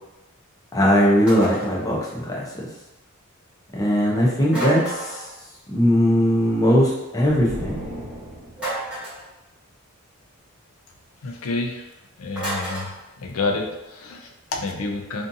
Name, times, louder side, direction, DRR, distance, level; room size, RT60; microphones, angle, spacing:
voice 1, 0.7-2.5 3.7-5.3 5.7-7.8, equal, 15° left, -4 dB, 0.5 m, -19 dB
sound 1, 1.3-1.8 4.5-5.3 8.6-9.3 12.4-12.9, right 2 dB, 5° right, 1.0 m, -29 dB
sound 2, 7.3-8.8, equal, 65° right, 0.8 m, -35 dB
voice 2, 11.2-11.8 12.2-12.9 13.2-15.3, left 3 dB, 75° left, 3 dB, 0.4 m, -28 dB
2.6 x 2.4 x 2.6 m, 1.0 s
head